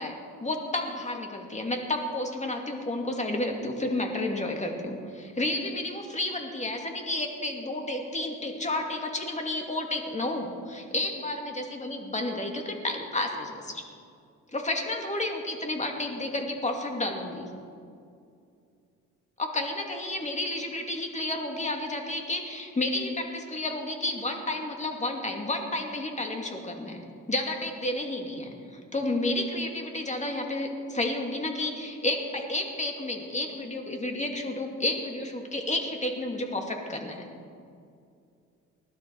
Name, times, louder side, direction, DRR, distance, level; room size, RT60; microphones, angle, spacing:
voice 1, 0.0-13.9 14.5-17.5 19.4-37.2, left 2 dB, 25° left, 3 dB, 2.4 m, -31 dB
20.0 x 12.5 x 4.7 m, 2.4 s
cardioid pair, 90°, 30 cm